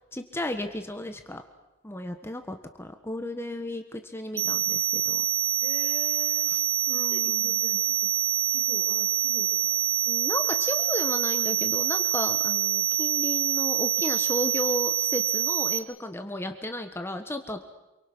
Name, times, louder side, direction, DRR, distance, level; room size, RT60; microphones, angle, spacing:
voice 1, 0.1-1.4 1.8-5.2 6.5-7.6 10.1-17.6, left 1 dB, 10° left, 6 dB, 1.5 m, -34 dB
sound 1, 4.4-15.8, right 11 dB, 90° right, 1.2 m, -26 dB
voice 2, 5.6-6.6 6.9-10.2, right 1 dB, 35° right, 6 dB, 2.4 m, -45 dB
27.5 x 24.0 x 6.3 m, 1.0 s
head